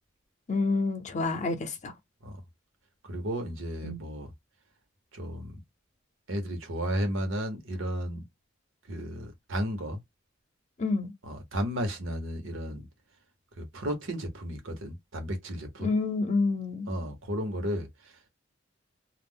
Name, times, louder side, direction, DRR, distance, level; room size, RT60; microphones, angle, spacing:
voice 1, 0.5-1.9 3.8-4.0 10.8-11.1 15.8-16.9, left 3 dB, 35° left, 0.6 m, -28 dB
voice 2, 3.0-4.3 5.1-5.6 6.3-8.2 8.9-10.0 11.2-12.9 13.6-15.9 16.9-18.2, equal, 80° right, 1.0 m, -33 dB
2.3 x 2.0 x 3.6 m
head